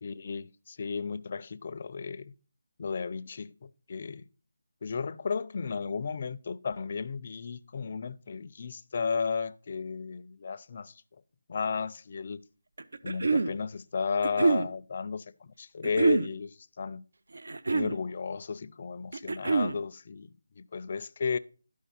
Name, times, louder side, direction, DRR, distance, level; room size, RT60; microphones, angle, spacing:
voice 1, 0.0-2.3 2.8-4.2 4.8-10.9 11.5-12.4 13.0-17.0 17.7-20.3 20.6-21.4, left 5 dB, 35° left, 0.4 m, -34 dB
sound 1, 12.8-13.5 14.2-14.7 15.8-16.3 17.3-18.0 19.1-19.8, right 4 dB, 70° right, 0.6 m, -26 dB
12.0 x 4.8 x 4.2 m
figure-of-eight pair, 170°, 0 cm